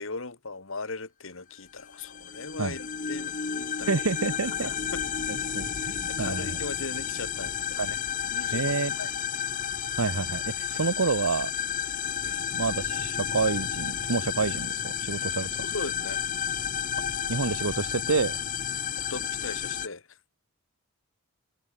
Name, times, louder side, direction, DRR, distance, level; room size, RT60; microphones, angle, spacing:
voice 1, 0.0-4.0 4.6-5.0 5.8-8.0 8.3-9.2 10.7-10.8 12.2-12.4 15.6-16.2 19.0-20.2, left 3 dB, 65° left, 2.0 m, -39 dB
sound 1, 1.8-19.9, left 8 dB, 35° left, 1.0 m, -32 dB
voice 2, 3.9-4.7 5.5-6.6 7.8-7.9 8.5-8.9 10.0-11.5 12.5-15.6 17.3-18.4, right 4 dB, 75° right, 0.9 m, -28 dB
head